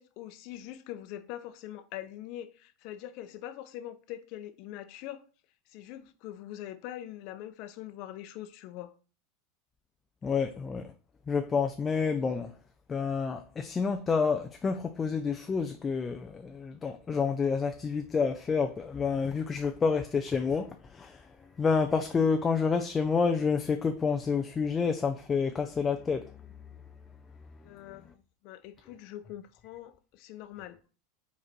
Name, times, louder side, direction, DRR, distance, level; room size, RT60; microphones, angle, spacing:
voice 1, 0.0-5.2 5.7-8.9 27.6-30.8, left 12 dB, 60° left, 0.8 m, -43 dB
voice 2, 10.2-10.9 11.3-12.5 12.9-21.3 21.6-26.4 27.9-28.0, left 5 dB, 20° left, 0.5 m, -29 dB
5.1 x 4.1 x 4.5 m
supercardioid pair, 120°, 0 cm